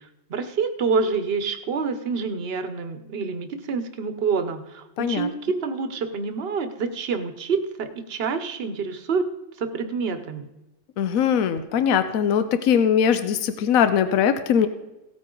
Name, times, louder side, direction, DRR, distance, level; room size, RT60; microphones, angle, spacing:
voice 1, 0.0-9.3 9.6-10.5, right 5 dB, 50° right, 10 dB, 1.0 m, -27 dB
voice 2, 5.0-5.3 11.0-14.7, left 8 dB, 85° left, 11 dB, 1.1 m, -21 dB
16.0 x 8.9 x 3.8 m, 0.98 s
omnidirectional pair, 1.4 m